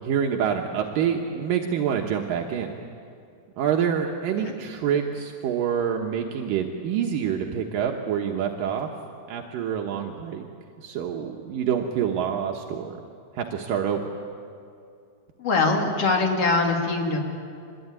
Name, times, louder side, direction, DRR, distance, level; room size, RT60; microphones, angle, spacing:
voice 1, 0.0-2.7 3.6-8.9 9.3-10.5 10.8-13.0 13.3-14.0, right 8 dB, 70° right, 2 dB, 2.1 m, -26 dB
voice 2, 15.4-17.2, left 3 dB, 40° left, 2 dB, 2.7 m, -22 dB
25.0 x 21.0 x 9.7 m, 2.5 s
omnidirectional pair, 5.5 m